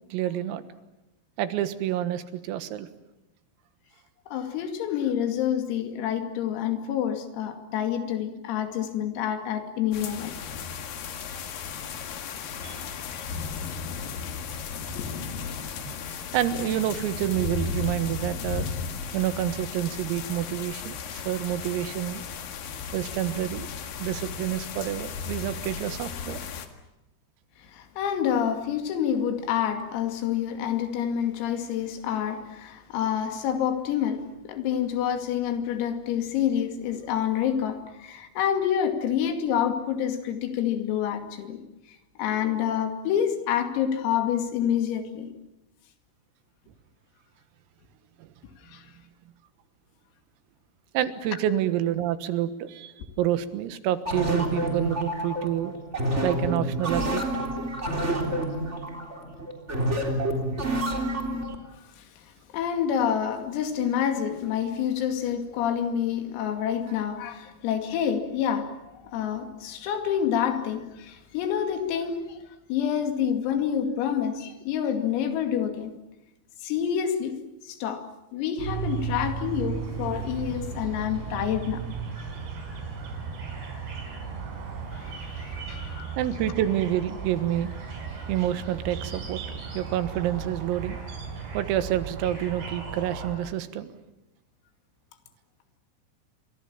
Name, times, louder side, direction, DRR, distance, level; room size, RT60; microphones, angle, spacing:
voice 1, 0.1-0.7 1.4-2.9 12.6-12.9 15.9-18.7 19.1-22.2 22.9-23.7 24.0-26.4 48.2-48.3 50.9-55.7 56.2-57.3 66.9-67.0 86.2-87.7 88.3-89.4 89.7-91.0 91.5-93.9, right 12 dB, 90° right, 12 dB, 4.2 m, -28 dB
voice 2, 4.3-10.4 13.1-13.3 15.0-15.1 27.7-41.6 42.2-45.3 48.7-48.8 62.0-62.1 62.5-72.4 72.7-75.9 76.6-78.0 78.3-81.8 84.9-86.2, left 9 dB, 90° left, 7 dB, 5.2 m, -28 dB
sound 1, 9.9-26.7, left 6 dB, 55° left, 3.0 m, -35 dB
sound 2, 54.0-61.6, right 1 dB, 15° right, 2.9 m, -28 dB
sound 3, 78.6-93.4, right 6 dB, 55° right, 6.3 m, -35 dB
29.5 x 24.5 x 7.3 m, 0.95 s
omnidirectional pair, 5.9 m